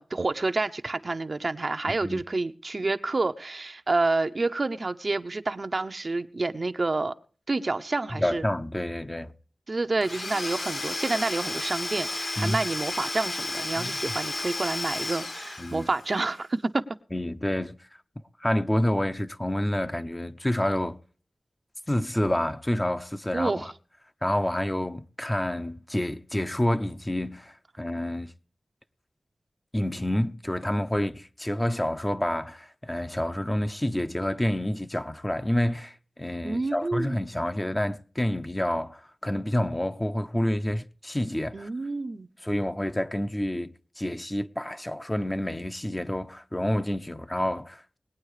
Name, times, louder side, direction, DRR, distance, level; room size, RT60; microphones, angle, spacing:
voice 1, 0.0-7.1 7.5-8.4 9.7-16.8 23.3-23.7 36.4-37.2 41.5-42.3, right 3 dB, 50° right, 0.7 m, -28 dB
voice 2, 1.9-2.2 8.2-9.3 12.4-12.6 13.8-14.0 15.6-15.9 17.1-17.8 18.4-21.0 21.9-23.7 24.2-28.3 29.7-41.7 42.4-48.0, left 1 dB, 20° left, 0.7 m, -28 dB
Domestic sounds home sounds / Tools, 10.0-16.1, left 2 dB, 75° left, 3.6 m, -33 dB
20.0 x 9.0 x 4.9 m
wide cardioid pair, 65°, 0 cm